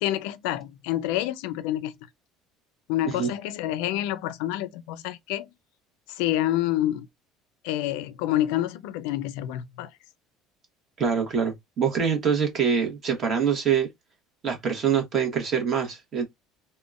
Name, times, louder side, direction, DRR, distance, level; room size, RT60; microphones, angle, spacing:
voice 1, 0.0-1.9 2.9-5.5 6.1-7.1 7.6-9.9, left 13 dB, 85° left, 0.4 m, -28 dB
voice 2, 11.0-13.9 14.4-16.2, right 7 dB, 30° right, 0.9 m, -25 dB
3.6 x 2.1 x 2.3 m
cardioid pair, 165°, 0 cm